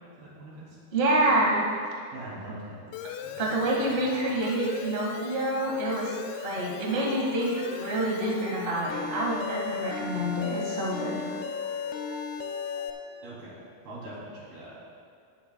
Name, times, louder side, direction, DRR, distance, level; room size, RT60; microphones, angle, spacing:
voice 1, 0.2-0.8 2.1-2.9 3.2-4.1 13.2-13.6 13.8-14.7, right 1 dB, 75° right, -6 dB, 5.1 m, -43 dB
voice 2, 0.9-1.6 3.4-6.2 6.4-7.5 7.8-11.2, right 1 dB, 35° right, -3 dB, 1.0 m, -27 dB
Alarm, 2.9-12.9, left 7 dB, 85° left, 2.6 m, -37 dB
sound 1, 7.3-13.1, left 2 dB, 55° left, 2.0 m, -43 dB
20.0 x 9.7 x 2.3 m, 2.4 s
omnidirectional pair, 4.5 m